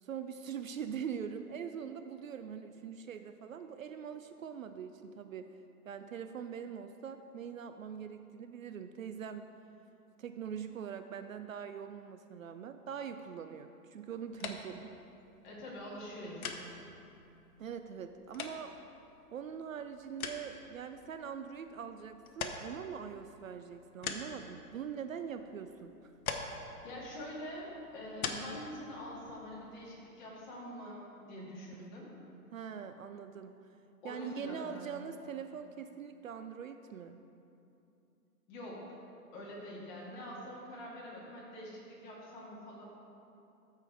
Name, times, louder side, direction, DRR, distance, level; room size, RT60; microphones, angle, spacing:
voice 1, 0.0-5.5 5.9-9.5 10.2-14.9 17.6-18.7 19.3-26.1 31.7-31.9 32.5-33.5 34.0-37.2, right 7 dB, 60° right, 8 dB, 0.5 m, -43 dB
sound 1, 14.3-30.0, left 5 dB, 65° left, 0.9 m, -46 dB
voice 2, 15.4-16.7 26.8-31.0 31.3-32.1 34.0-35.0 38.5-38.8 39.3-42.8, left 1 dB, 30° left, -5 dB, 2.1 m, -45 dB
13.0 x 4.6 x 4.6 m, 2.8 s
hypercardioid pair, 155°, 47 cm